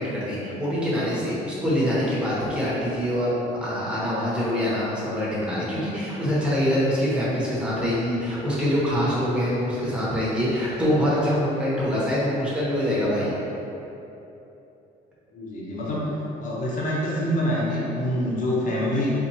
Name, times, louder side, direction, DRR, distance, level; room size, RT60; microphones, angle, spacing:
voice 1, 0.0-3.3 3.6-13.4, equal, 5° right, -8 dB, 1.0 m, -24 dB
voice 2, 15.3-19.1, equal, 50° left, -6 dB, 0.8 m, -26 dB
4.3 x 2.4 x 2.8 m, 3.0 s
cardioid pair, 110°, 17 cm